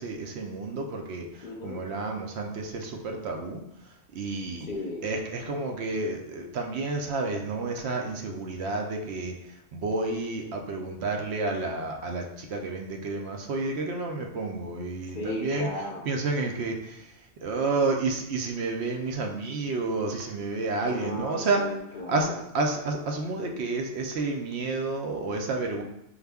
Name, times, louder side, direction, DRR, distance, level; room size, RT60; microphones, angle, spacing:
voice 1, 0.0-3.6 4.1-4.7 5.0-15.7 16.1-21.6 22.1-25.8, right 3 dB, 70° right, 2 dB, 0.8 m, -30 dB
voice 2, 1.4-1.8 4.6-5.1 15.1-16.0 20.9-22.5, left 1 dB, 55° left, 0 dB, 0.6 m, -36 dB
5.0 x 2.4 x 3.4 m, 0.81 s
omnidirectional pair, 1.2 m